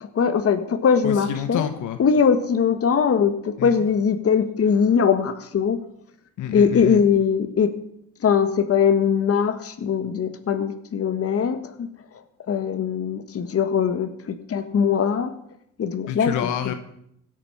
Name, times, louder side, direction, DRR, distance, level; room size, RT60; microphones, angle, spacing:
voice 1, 0.0-1.7 2.0-5.8 6.5-7.7 8.2-11.9 12.5-15.3 15.8-16.3 16.6-16.7, left 6 dB, 50° left, 9 dB, 1.5 m, -21 dB
voice 2, 1.0-2.0 3.6-3.7 6.4-7.0 16.1-16.7, left 10 dB, 85° left, 8 dB, 1.2 m, -28 dB
16.5 x 8.3 x 5.8 m, 0.72 s
cardioid pair, 90°, 30 cm